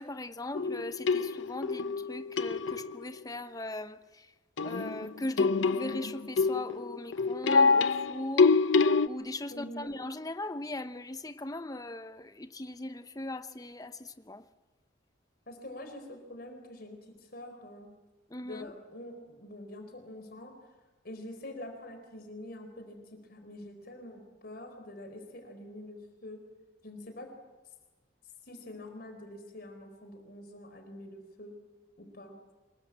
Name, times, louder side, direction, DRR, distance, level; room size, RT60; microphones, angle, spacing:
voice 1, 0.0-4.3 4.6-8.6 9.0-14.4 18.3-18.7, left 1 dB, 20° left, 0.9 m, -39 dB
sound 1, 0.5-3.0 4.6-9.1, left 4 dB, 80° left, 0.8 m, -26 dB
voice 2, 9.5-9.9 15.5-17.9 18.4-20.5 21.0-26.4 26.8-27.3 28.5-31.6 32.0-32.3, left 1 dB, 50° left, 4.2 m, -45 dB
26.0 x 21.5 x 8.8 m
head